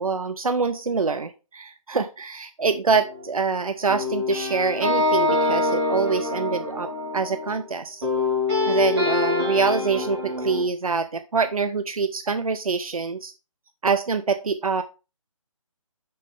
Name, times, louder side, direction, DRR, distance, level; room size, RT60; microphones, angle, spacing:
voice 1, 0.0-8.0 8.7-13.3 13.8-14.8, right 5 dB, 85° right, 10 dB, 0.7 m, -25 dB
sound 1, 2.9-3.5 3.9-7.6 8.0-10.7, left 2 dB, 50° right, 3.5 m, -25 dB
6.4 x 5.5 x 3.4 m, 0.31 s
figure-of-eight pair, 155°, 18 cm